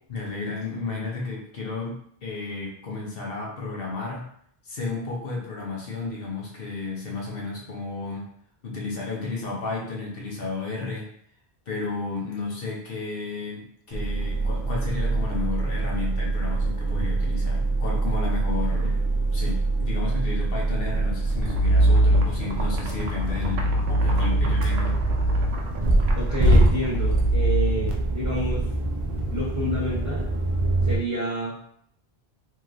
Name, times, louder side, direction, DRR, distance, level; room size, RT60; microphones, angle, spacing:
voice 1, 0.1-4.2 4.6-8.3 8.6-11.1 11.7-19.0 19.3-25.0, left 3 dB, 65° left, -2 dB, 0.9 m, -33 dB
sound 1, 13.9-31.0, right 2 dB, 60° right, 0.3 m, -23 dB
sound 2, 21.4-27.5, right 3 dB, 80° right, 0.8 m, -38 dB
voice 2, 26.1-28.7 29.3-30.2 30.8-31.6, equal, 20° right, -8 dB, 0.9 m, -29 dB
3.1 x 2.7 x 2.4 m, 0.66 s
omnidirectional pair, 1.1 m